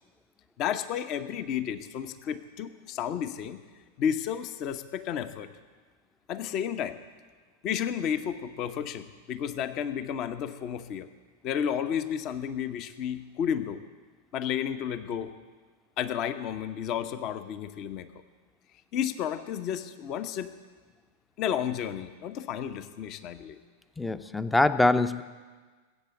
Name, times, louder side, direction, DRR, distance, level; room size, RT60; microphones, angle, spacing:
voice 1, 0.6-3.6 4.0-5.5 6.3-7.0 7.6-11.1 11.4-13.8 14.3-15.3 16.0-18.1 18.9-20.5 21.4-23.6, left 9 dB, 40° left, 11 dB, 0.9 m, -32 dB
voice 2, 24.0-25.2, left 2 dB, 5° left, 13 dB, 0.6 m, -23 dB
20.5 x 8.4 x 8.2 m, 1.4 s
figure-of-eight pair, 90°, 0 cm